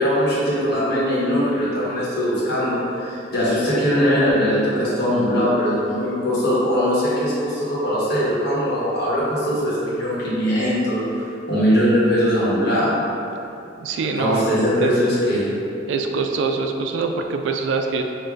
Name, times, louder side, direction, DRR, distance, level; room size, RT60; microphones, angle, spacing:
voice 1, 0.0-11.1 11.5-12.9 14.2-15.5, equal, 60° left, -9 dB, 1.3 m, -20 dB
voice 2, 13.8-14.5 14.8-14.9 15.9-18.0, right 4 dB, 80° right, 4 dB, 0.3 m, -24 dB
6.2 x 2.5 x 2.5 m, 2.7 s
head